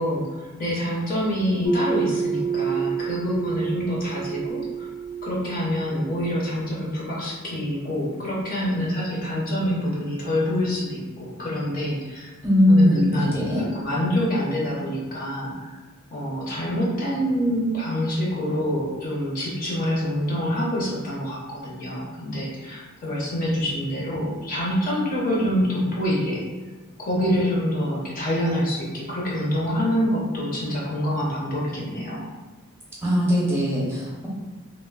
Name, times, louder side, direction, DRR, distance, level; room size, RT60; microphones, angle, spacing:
voice 1, 0.0-4.9 5.2-12.3 12.7-15.8 16.1-26.4 27.0-32.2, equal, 40° left, -5 dB, 0.6 m, -26 dB
sound 1, 1.6-6.4, right 5 dB, 90° left, 0.5 m, -28 dB
voice 2, 12.4-13.6 33.0-34.3, left 1 dB, 10° right, -6 dB, 0.6 m, -20 dB
3.0 x 2.0 x 2.2 m, 1.3 s
head